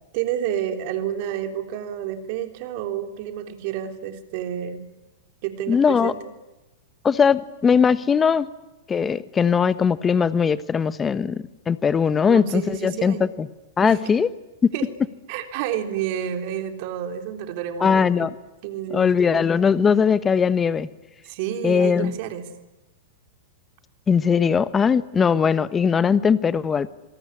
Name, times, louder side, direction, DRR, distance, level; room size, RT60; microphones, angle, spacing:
voice 1, 0.1-4.8 5.4-6.2 12.3-13.3 13.8-14.1 14.7-14.9 15.3-18.3 18.6-19.1 21.2-22.5, right 10 dB, 55° right, 6 dB, 3.6 m, -29 dB
voice 2, 5.7-6.1 7.0-8.5 8.9-13.5 13.8-14.3 14.6-14.7 17.8-18.3 18.9-20.9 21.6-22.1 24.1-26.9, left 6 dB, 20° left, 15 dB, 1.2 m, -20 dB
27.0 x 19.0 x 9.9 m, 1.1 s
hypercardioid pair, 110°, 0 cm